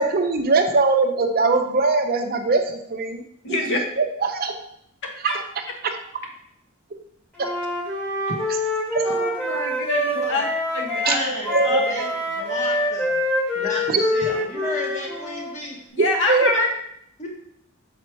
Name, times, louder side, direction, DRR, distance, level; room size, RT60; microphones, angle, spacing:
voice 1, 0.0-3.2 4.0-4.5 5.2-5.4 5.8-5.9 7.4-7.5 8.9-9.1 11.1-11.2 11.5-11.9 16.0-16.5, right 3 dB, 45° right, 5 dB, 0.6 m, -21 dB
voice 2, 3.4-3.8 5.0-5.4 9.0-10.4 10.7-11.2 11.6-11.8 15.9-16.7, left 2 dB, 60° left, 2 dB, 1.1 m, -25 dB
Wind instrument woodwind instrument, 7.4-11.2 11.4-15.6, left 1 dB, 5° left, 1.3 m, -25 dB
voice 3, 11.1-13.2 13.5-15.8 16.5-16.6 17.2-17.3, left 1 dB, 35° left, -1 dB, 1.5 m, -32 dB
5.7 x 4.2 x 4.6 m, 0.73 s
head